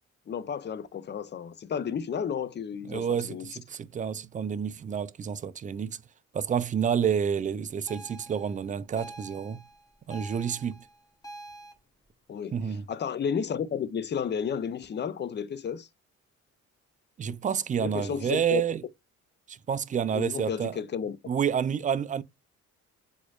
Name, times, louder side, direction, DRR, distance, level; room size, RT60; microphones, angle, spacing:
voice 1, 0.3-3.4 12.3-15.9 17.8-18.6 20.1-21.2, left 7 dB, 35° left, 0.5 m, -32 dB
voice 2, 2.9-6.0 6.3-9.6 10.1-10.9 12.5-12.9 17.2-18.8 19.5-20.8 21.3-22.2, right 7 dB, 25° right, 0.3 m, -29 dB
sound 1, 7.9-11.7, right 1 dB, 10° left, 1.0 m, -46 dB
4.1 x 2.9 x 2.3 m
cardioid pair, 90°, 30 cm